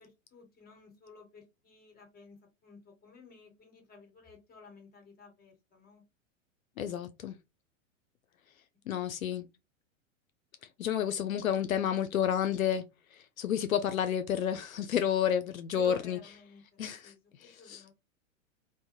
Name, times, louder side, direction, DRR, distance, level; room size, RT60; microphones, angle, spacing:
voice 1, 0.0-6.0 15.7-17.9, left 4 dB, 25° left, 1.6 m, -54 dB
voice 2, 6.8-7.4 8.9-9.5 10.8-12.8 13.4-16.2 16.8-17.1 17.4-17.8, left 9 dB, 85° left, 0.5 m, -30 dB
2.6 x 2.1 x 3.7 m
hypercardioid pair, 100°, 40 cm